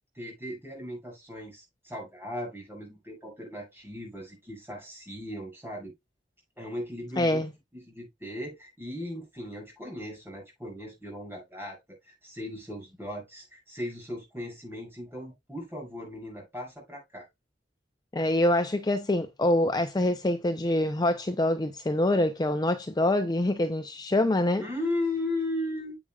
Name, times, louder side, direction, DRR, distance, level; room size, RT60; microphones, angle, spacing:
voice 1, 0.1-5.9 6.6-7.4 7.7-11.8 12.0-17.3 24.6-26.0, left 1 dB, 10° right, 6.3 m, -37 dB
voice 2, 7.2-7.5 18.1-24.6, left 1 dB, 20° left, 0.5 m, -25 dB
9.7 x 8.2 x 2.3 m
head